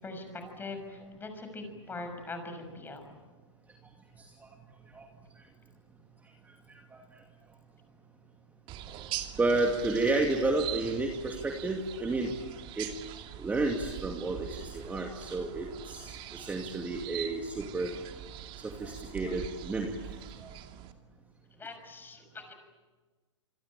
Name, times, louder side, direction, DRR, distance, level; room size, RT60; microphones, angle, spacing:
voice 1, 0.0-3.0 21.5-22.5, left 3 dB, 15° left, 6 dB, 6.2 m, -42 dB
sound 1, 8.7-20.9, right 11 dB, 35° right, 2.5 m, -43 dB
voice 2, 9.4-12.3 12.8-12.9 13.4-17.9 18.6-19.9 20.4-20.5, right 2 dB, 10° right, 2 dB, 2.4 m, -31 dB
27.0 x 24.0 x 8.9 m, 1.3 s
hypercardioid pair, 115°, 16 cm